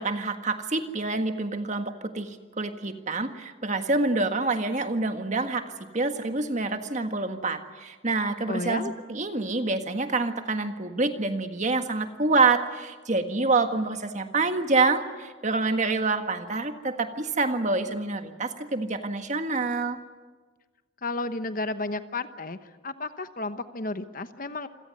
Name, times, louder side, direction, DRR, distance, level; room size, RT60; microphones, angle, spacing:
voice 1, 0.0-20.0, right 3 dB, 35° right, 7 dB, 1.6 m, -27 dB
voice 2, 8.5-8.9 21.0-22.6 22.8-24.7, left 3 dB, 45° left, 10 dB, 1.0 m, -32 dB
27.5 x 17.0 x 9.6 m, 1.4 s
head